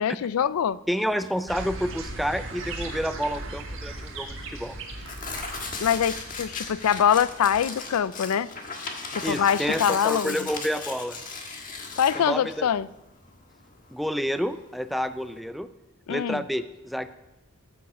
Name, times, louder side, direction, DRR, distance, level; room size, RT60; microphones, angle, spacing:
voice 1, 0.0-0.8 5.8-8.5 9.1-10.4 12.0-12.9 16.1-16.4, left 8 dB, 80° left, 0.4 m, -24 dB
voice 2, 0.9-4.8 9.2-11.2 12.1-12.7 13.9-15.7 16.1-17.1, equal, ahead, 0.3 m, -29 dB
Tearing, 1.1-15.4, left 4 dB, 40° left, 1.4 m, -38 dB
sound 1, 1.5-7.6, right 2 dB, 60° right, 1.6 m, -38 dB
13.0 x 7.1 x 6.0 m
head